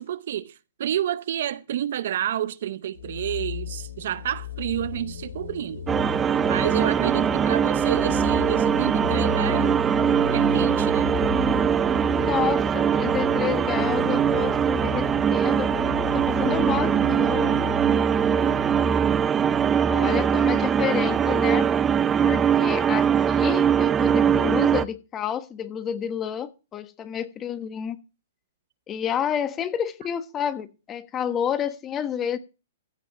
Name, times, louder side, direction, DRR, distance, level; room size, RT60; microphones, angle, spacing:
voice 1, 0.0-5.9 6.4-9.8 10.3-11.2 22.6-22.7, right 11 dB, 65° right, 0.7 m, -29 dB
sound 1, 2.9-20.4, left 8 dB, 75° left, 4.6 m, -36 dB
sound 2, 5.9-24.8, right 8 dB, 15° right, 0.6 m, -22 dB
voice 2, 12.1-15.9 16.1-17.5 19.9-21.7 22.2-28.0 28.9-32.4, left 9 dB, 25° left, 1.3 m, -29 dB
15.5 x 5.2 x 6.9 m
hypercardioid pair, 130°, 0 cm